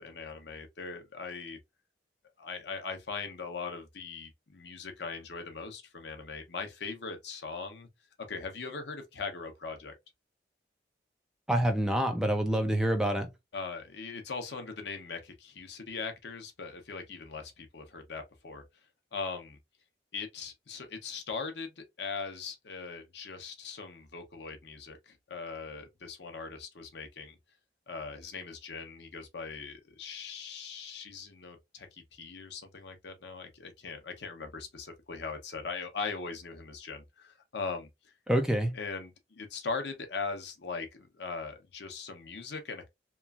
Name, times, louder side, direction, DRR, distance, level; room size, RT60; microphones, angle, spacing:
voice 1, 0.0-1.6 2.4-7.9 8.3-9.9 13.5-18.6 19.1-19.6 20.1-27.4 27.9-38.1 38.7-42.9, left 4 dB, 75° left, 0.7 m, -40 dB
voice 2, 11.5-13.3 38.3-38.7, right 1 dB, 5° right, 0.4 m, -27 dB
3.0 x 2.4 x 2.3 m
head